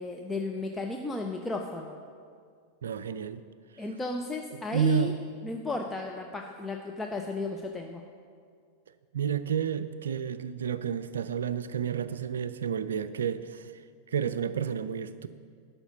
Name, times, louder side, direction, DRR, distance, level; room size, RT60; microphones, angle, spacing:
voice 1, 0.0-1.9 3.8-5.1 5.4-8.0, left 3 dB, 10° left, 1 dB, 0.6 m, -34 dB
voice 2, 2.8-3.4 4.7-5.1 9.1-13.7 14.1-15.3, right 8 dB, 65° right, 13 dB, 0.4 m, -30 dB
11.5 x 5.7 x 6.9 m, 2.1 s
figure-of-eight pair, 90°, 0 cm